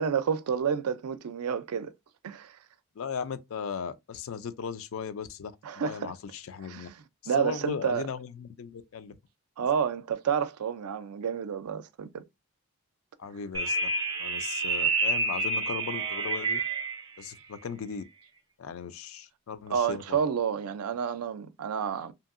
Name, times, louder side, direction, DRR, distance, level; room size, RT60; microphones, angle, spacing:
voice 1, 0.0-1.9 2.2-2.6 5.6-6.1 6.6-8.0 9.6-12.2 19.7-22.1, right 7 dB, 85° right, 0.4 m, -30 dB
voice 2, 3.0-6.9 7.4-9.2 13.2-13.8 14.2-16.6 17.2-18.0 18.6-20.2, left 6 dB, 65° left, 0.4 m, -37 dB
sound 1, 13.5-17.0, right 3 dB, 20° right, 0.5 m, -28 dB
2.7 x 2.7 x 2.4 m
head